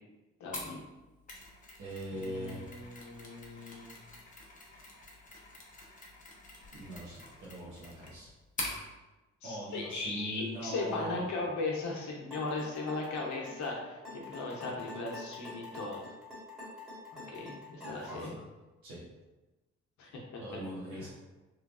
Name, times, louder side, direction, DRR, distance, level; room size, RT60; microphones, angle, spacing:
voice 1, 0.4-0.8 2.1-3.9 9.4-16.0 17.1-18.3 20.0-20.4 20.9-21.1, left 3 dB, 75° left, -2 dB, 0.8 m, -38 dB
Mechanisms, 0.5-8.8, left 2 dB, 25° left, 0.6 m, -45 dB
voice 2, 1.8-2.7 6.7-8.3 9.4-11.2 18.1-18.4 18.8-19.0 20.4-21.1, equal, 80° right, -8 dB, 0.9 m, -41 dB
sound 1, 12.3-18.4, left 1 dB, ahead, 1.3 m, -46 dB
3.2 x 2.3 x 2.4 m, 1.1 s
cardioid pair, 105°, 29 cm